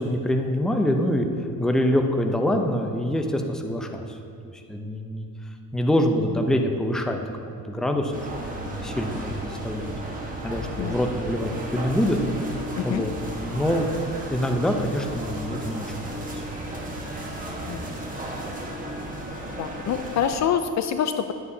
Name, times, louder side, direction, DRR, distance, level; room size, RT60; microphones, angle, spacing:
voice 1, 0.0-4.2 4.5-5.3 5.7-7.2 7.5-8.3 8.5-9.9 10.4-12.2 12.8-13.9 14.3-16.4, left 1 dB, ahead, 4 dB, 0.6 m, -25 dB
sound 1, 8.1-20.4, right 1 dB, 20° right, 1.4 m, -34 dB
voice 2, 19.6-21.3, left 8 dB, 45° left, 9 dB, 0.5 m, -26 dB
11.5 x 8.2 x 2.8 m, 2.4 s
cardioid pair, 105°, 38 cm